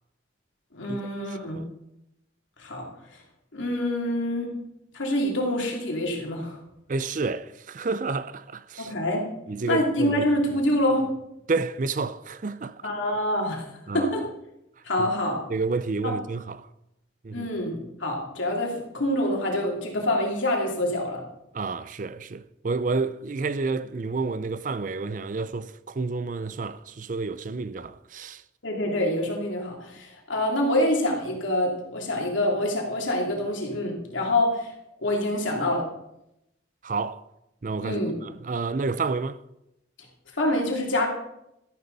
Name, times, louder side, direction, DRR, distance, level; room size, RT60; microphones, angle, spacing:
voice 1, 0.7-1.6 2.6-2.9 3.5-4.5 4.9-6.6 8.8-9.3 9.7-11.1 12.8-13.7 13.9-14.3 14.8-15.4 16.0-16.1 17.3-21.2 28.6-34.7 35.0-35.8 37.8-38.1 40.3-41.1, left 1 dB, 85° left, 3.0 m, -26 dB
voice 2, 6.9-8.9 9.5-10.3 11.5-12.8 13.9-14.1 15.0-15.1 15.5-16.7 17.2-17.5 21.5-28.4 36.8-37.2 37.6-39.4, right 4 dB, 45° right, 0.5 m, -30 dB
13.0 x 12.0 x 4.1 m
head